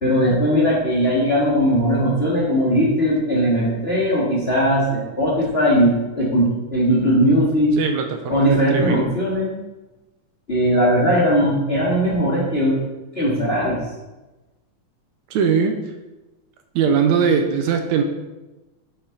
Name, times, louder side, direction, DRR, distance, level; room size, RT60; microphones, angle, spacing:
voice 1, 0.0-7.7 8.3-9.6 10.5-12.8 13.1-13.8, equal, 25° left, -5 dB, 1.6 m, -19 dB
voice 2, 7.8-9.2 15.3-15.8 16.8-18.0, right 6 dB, 75° right, 5 dB, 1.9 m, -20 dB
9.1 x 6.6 x 3.9 m, 1.1 s
omnidirectional pair, 3.4 m